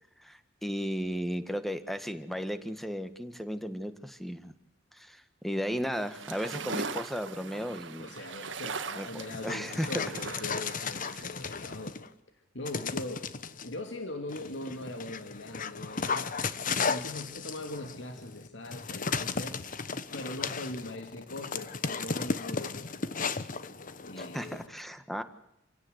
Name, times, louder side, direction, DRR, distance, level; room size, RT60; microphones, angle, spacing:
voice 1, 0.2-4.5 4.9-8.1 9.0-9.9 24.2-25.2, equal, ahead, 10 dB, 1.7 m, -35 dB
sound 1, 5.9-11.2, right 4 dB, 80° right, 1.7 m, -40 dB
voice 2, 8.0-12.0 12.5-13.3 13.6-19.7 20.1-22.9 24.0-24.6, left 2 dB, 75° left, 5 dB, 2.6 m, -41 dB
Dog, 9.2-12.1 12.6-13.7 14.3-24.7, left 5 dB, 45° left, 1.1 m, -35 dB
28.0 x 17.0 x 8.1 m, 0.83 s
head